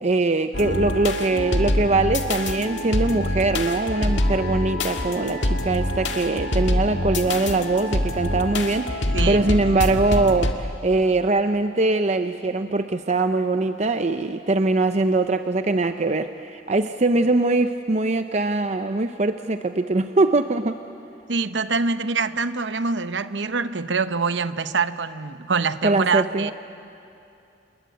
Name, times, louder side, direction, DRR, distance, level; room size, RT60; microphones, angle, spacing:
voice 1, 0.0-20.8 25.8-26.5, right 2 dB, 40° right, 8 dB, 0.6 m, -22 dB
sound 1, 0.5-10.5, left 1 dB, 80° left, 1.8 m, -25 dB
voice 2, 9.1-9.5 21.3-26.5, right 4 dB, 75° right, 12 dB, 0.9 m, -25 dB
28.0 x 21.0 x 9.4 m, 2.7 s
head